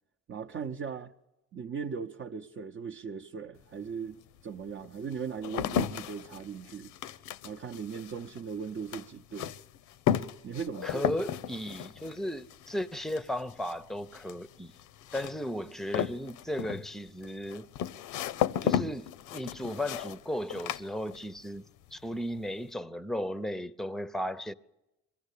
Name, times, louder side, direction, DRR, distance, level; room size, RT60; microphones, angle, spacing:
voice 1, 0.3-1.1 1.5-6.9 7.4-9.5 10.4-11.0, right 6 dB, 45° right, 0.7 m, -38 dB
sound 1, 3.6-3.7 4.4-21.6 21.8-22.4, left 10 dB, 90° left, 0.6 m, -35 dB
voice 2, 10.8-14.7 15.1-17.7 18.6-21.6 21.9-24.5, equal, ahead, 0.6 m, -35 dB
22.5 x 15.0 x 8.3 m
cardioid pair, 90°, 30 cm